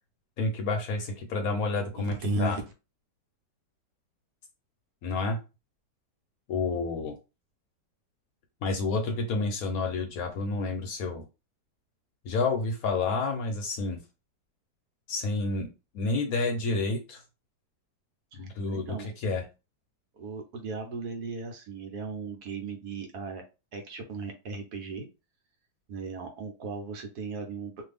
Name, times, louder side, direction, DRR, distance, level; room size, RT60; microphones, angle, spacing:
voice 1, 0.4-2.6 5.0-5.4 6.5-7.2 8.6-11.2 12.2-14.0 15.1-17.2 18.3-19.4, left 3 dB, 65° left, 4 dB, 1.0 m, -29 dB
voice 2, 1.9-2.6 18.3-19.1 20.1-23.4 23.7-25.1 25.9-27.8, right 3 dB, 70° right, 5 dB, 1.1 m, -36 dB
2.7 x 2.5 x 3.3 m, 0.28 s
omnidirectional pair, 1.8 m